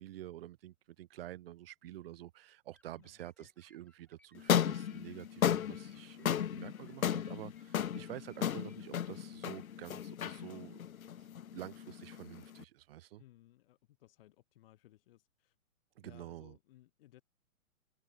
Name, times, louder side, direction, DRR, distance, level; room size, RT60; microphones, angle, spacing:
voice 1, 0.0-10.8 11.2-13.2 16.0-16.6, right 14 dB, 45° right, 2.7 m, -49 dB
sound 1, 2.7-8.9, left 2 dB, 5° left, 3.0 m, -70 dB
sound 2, 4.4-12.6, left 9 dB, 85° left, 1.0 m, -35 dB
voice 2, 13.2-15.6 16.0-17.2, left 15 dB, 40° left, 3.6 m, -62 dB
hypercardioid pair, 150°, 41 cm